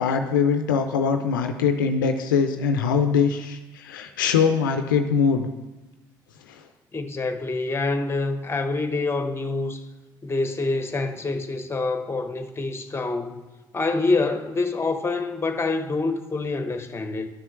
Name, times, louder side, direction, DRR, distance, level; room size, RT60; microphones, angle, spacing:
voice 1, 0.0-5.5, left 6 dB, 85° left, 7 dB, 0.4 m, -22 dB
voice 2, 6.9-9.8 10.2-13.4 13.7-17.3, left 3 dB, 25° left, 8 dB, 0.9 m, -26 dB
11.5 x 6.0 x 3.1 m, 1.1 s
hypercardioid pair, 50°, 11 cm